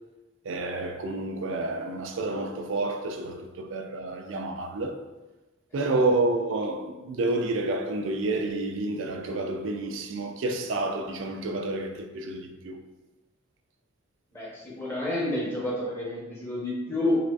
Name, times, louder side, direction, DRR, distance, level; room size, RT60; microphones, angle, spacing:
voice 1, 0.4-5.0 5.7-12.8, right 2 dB, 65° right, 0.4 m, -29 dB
voice 2, 14.3-17.2, left 1 dB, 10° left, 0.7 m, -29 dB
4.7 x 2.4 x 2.3 m
head